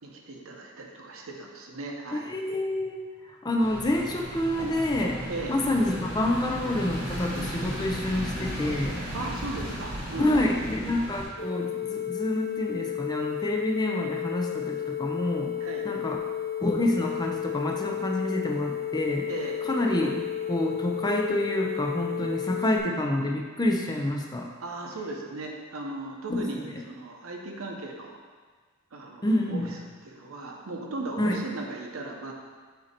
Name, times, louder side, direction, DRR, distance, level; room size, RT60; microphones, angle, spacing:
voice 1, 0.0-2.3 5.3-5.5 9.1-10.6 15.6-15.9 19.3-19.6 24.6-28.2 28.9-29.2 29.5-29.6 30.0-32.3, right 2 dB, 85° right, 1 dB, 0.8 m, -37 dB
voice 2, 2.1-3.0 3.3-9.0 10.2-15.5 15.8-16.2 16.6-19.3 19.6-24.5 26.3-26.7 29.2-29.7 31.2-31.5, left 1 dB, 20° left, 1 dB, 0.5 m, -28 dB
sound 1, 3.6-11.3, equal, 50° right, 1.6 m, -35 dB
sound 2, 11.4-22.8, left 10 dB, 60° left, 1.1 m, -32 dB
7.7 x 2.8 x 4.3 m, 1.5 s
head